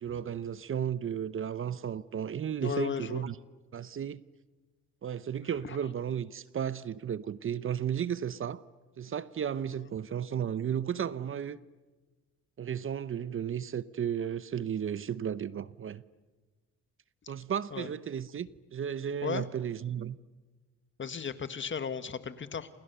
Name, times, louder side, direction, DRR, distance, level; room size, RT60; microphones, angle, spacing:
voice 1, 0.0-3.4 3.7-4.2 5.0-8.6 9.0-11.6 12.6-16.0 17.3-20.2, right 8 dB, 45° right, 0.8 m, -34 dB
voice 2, 2.6-3.2 5.6-5.8 17.7-17.9 19.2-19.4 21.0-22.7, left 6 dB, 40° left, 1.7 m, -35 dB
28.5 x 28.0 x 6.9 m
cardioid pair, 90°, 30 cm